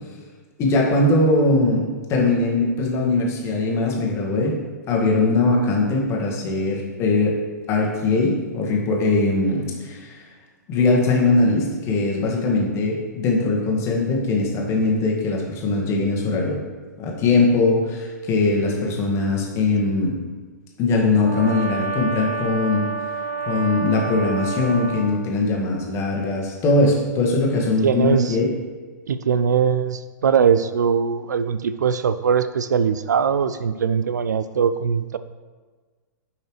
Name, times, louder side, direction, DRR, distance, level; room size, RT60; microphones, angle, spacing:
voice 1, 0.6-4.6 4.9-7.4 7.7-10.2 10.7-16.6 17.0-20.1 20.8-22.9 23.5-28.5, left 3 dB, 25° left, -1 dB, 1.7 m, -21 dB
Brass instrument, 21.2-25.1, right 4 dB, 30° right, 1.6 m, -29 dB
voice 2, 27.8-28.4 29.1-35.2, right 7 dB, 65° right, 12 dB, 0.4 m, -21 dB
10.0 x 5.7 x 3.2 m, 1.4 s
figure-of-eight pair, 105°, 10 cm